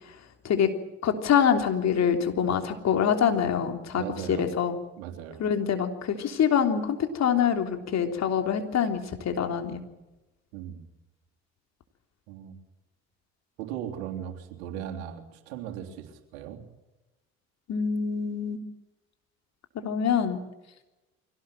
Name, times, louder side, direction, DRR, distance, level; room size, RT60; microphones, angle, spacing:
voice 1, 1.0-4.8 5.4-9.8 17.7-18.6 19.8-20.4, left 8 dB, 55° left, 6 dB, 3.5 m, -25 dB
voice 2, 3.9-4.5 4.9-5.4 10.5-10.9 12.3-12.5 13.6-16.6, right 10 dB, 80° right, 4 dB, 3.4 m, -38 dB
24.5 x 17.5 x 9.2 m, 1.0 s
hypercardioid pair, 60°, 33 cm